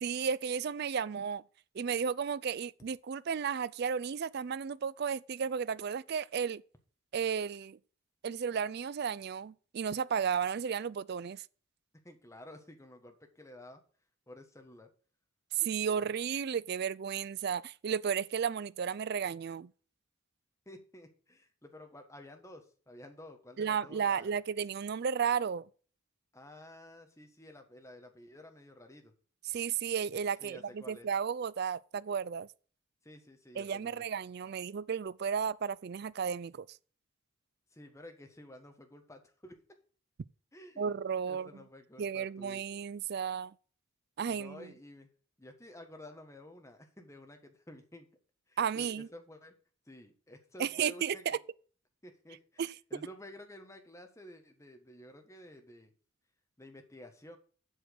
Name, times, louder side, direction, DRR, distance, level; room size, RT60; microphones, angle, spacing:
voice 1, 0.0-1.4 1.7-6.6 7.1-7.8 8.2-11.4 15.5-19.7 23.6-25.7 29.4-32.5 33.6-36.7 40.8-41.6 42.0-43.5 44.2-44.7 48.6-49.1 50.6-51.4 52.6-52.7, right 7 dB, 50° right, 0.3 m, -33 dB
voice 2, 12.0-13.8 14.3-14.9 20.6-24.3 26.3-29.1 30.4-31.1 33.0-34.0 37.7-39.5 40.5-42.6 44.3-45.1 45.4-48.1 48.5-49.5 49.9-51.4 52.0-55.9 56.6-57.4, left 1 dB, 15° left, 1.4 m, -52 dB
8.0 x 6.2 x 6.6 m
head